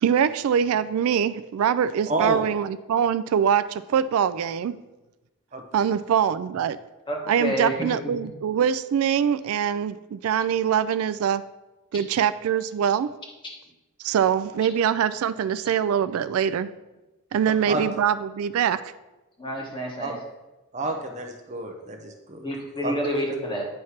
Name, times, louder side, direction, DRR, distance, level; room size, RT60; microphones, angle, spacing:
voice 1, 0.0-4.8 5.7-6.8 7.3-11.4 11.9-13.1 14.0-16.7 17.3-18.8, right 8 dB, 75° right, 15 dB, 0.3 m, -23 dB
voice 2, 2.1-2.4 5.5-5.6 17.7-17.8 20.0-20.1 20.7-22.5 22.8-22.9, right 2 dB, 30° right, 4 dB, 0.7 m, -29 dB
voice 3, 7.1-8.1 11.9-12.0 15.6-15.7 16.1-16.2 17.4-17.8 19.4-20.2 20.8-21.0 22.4-23.7, equal, 20° left, -1 dB, 1.5 m, -30 dB
9.5 x 3.2 x 5.6 m, 1.1 s
head